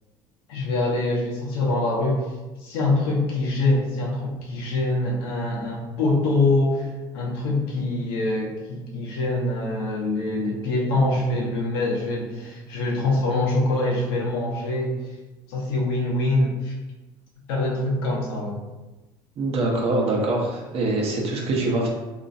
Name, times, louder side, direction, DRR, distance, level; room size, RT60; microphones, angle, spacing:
voice 1, 0.5-2.2 2.6-6.9 7.1-15.0 15.5-16.7 17.5-18.6, left 2 dB, 85° left, -3 dB, 0.9 m, -24 dB
voice 2, 19.4-21.9, right 2 dB, 55° right, -1 dB, 1.0 m, -24 dB
3.1 x 3.0 x 2.7 m, 1.1 s
hypercardioid pair, 75°, 12 cm